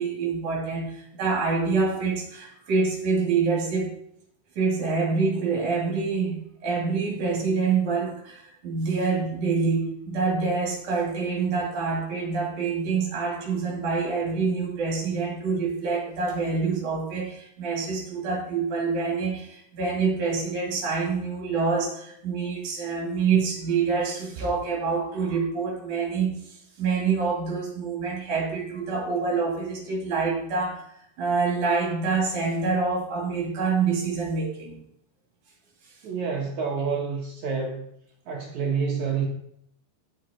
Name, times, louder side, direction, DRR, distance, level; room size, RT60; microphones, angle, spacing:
voice 1, 0.0-3.9 4.6-30.9 31.2-34.8, right 4 dB, 50° right, -1 dB, 3.5 m, -26 dB
voice 2, 36.0-37.8 38.3-39.2, right 5 dB, 70° right, -1 dB, 1.8 m, -28 dB
11.5 x 6.5 x 4.3 m, 0.71 s
omnidirectional pair, 4.8 m